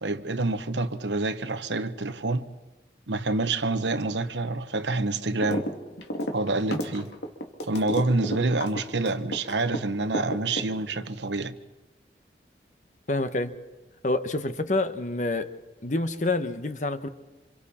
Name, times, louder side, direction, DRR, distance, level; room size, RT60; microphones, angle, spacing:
voice 1, 0.0-2.5 3.1-5.7 6.3-7.1 7.6-11.5, right 2 dB, 90° right, 1.1 m, -27 dB
sound 1, 5.4-5.7 6.0-9.8 10.1-11.0, equal, 80° left, 2.7 m, -30 dB
voice 2, 13.1-13.5 14.0-15.5 15.8-17.1, left 2 dB, 45° left, 1.1 m, -27 dB
28.0 x 26.5 x 4.3 m
head